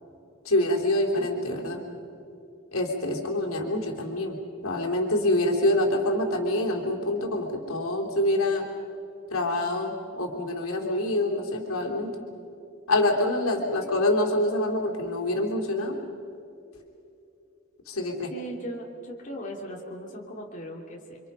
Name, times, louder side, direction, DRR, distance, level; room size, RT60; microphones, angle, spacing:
voice 1, 0.4-1.8 2.7-4.4 4.6-8.6 9.3-12.1 12.9-16.0 17.9-18.3, left 1 dB, 80° left, 1 dB, 3.3 m, -26 dB
voice 2, 9.5-9.8 13.5-13.9 18.3-21.2, equal, 35° left, -2 dB, 2.9 m, -39 dB
30.0 x 25.0 x 5.6 m, 2.8 s
head